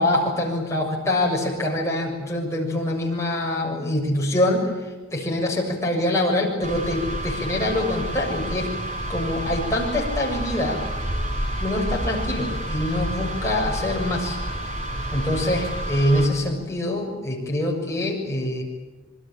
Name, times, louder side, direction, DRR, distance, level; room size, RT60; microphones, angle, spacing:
voice 1, 0.0-4.7 5.1-8.7 9.1-10.8 11.6-14.4 15.1-18.6, left 1 dB, 15° left, -2 dB, 7.1 m, -24 dB
sound 1, 6.6-16.3, right 1 dB, 30° right, 6.4 m, -29 dB
27.0 x 23.5 x 8.9 m, 1.3 s
head